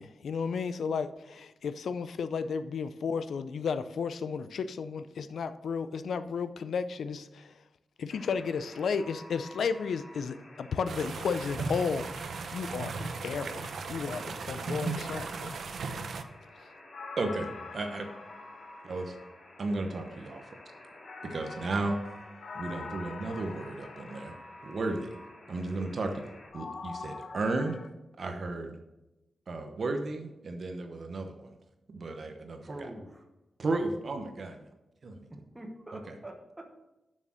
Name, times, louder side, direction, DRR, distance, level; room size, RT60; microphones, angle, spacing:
voice 1, 0.0-7.5 8.0-15.6, left 5 dB, 80° left, 0.5 m, -33 dB
Alarm, 8.1-26.5, left 1 dB, 40° left, 2.1 m, -51 dB
sound 1, 10.9-16.2, right 4 dB, 65° right, 0.6 m, -37 dB
sound 2, 16.9-19.7 21.0-24.9 26.5-27.9, left 4 dB, 55° left, 0.8 m, -44 dB
voice 2, 17.2-18.1 18.8-19.2 19.6-20.4 21.2-22.0 22.5-24.3 24.6-25.1 25.5-26.2 26.5-27.8 28.2-28.8 29.5-31.5 31.9-32.9 33.6-34.6 35.0-35.3 35.9-36.1, right 2 dB, 45° right, 0.9 m, -34 dB
voice 3, 32.6-33.3 35.3-36.7, right 1 dB, 10° right, 1.0 m, -45 dB
7.4 x 6.4 x 6.2 m
wide cardioid pair, 165°, 0 cm